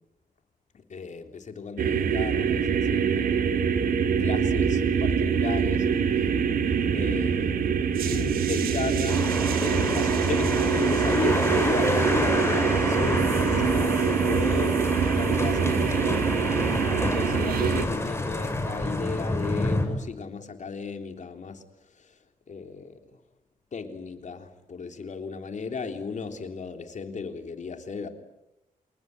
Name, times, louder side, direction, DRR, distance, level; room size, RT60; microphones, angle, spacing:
voice 1, 0.7-3.5 4.2-5.9 6.1-6.3 6.9-7.8 8.1-14.8 15.2-21.6 21.9-22.2 22.5-23.0 23.7-28.1, left 5 dB, 55° left, 6 dB, 3.5 m, -35 dB
sound 1, 1.8-17.9, right 7 dB, 85° right, 2.4 m, -24 dB
sound 2, 9.1-19.9, left 2 dB, 15° left, 5.3 m, -29 dB
28.5 x 20.0 x 9.6 m, 0.93 s
cardioid pair, 80°, 15 cm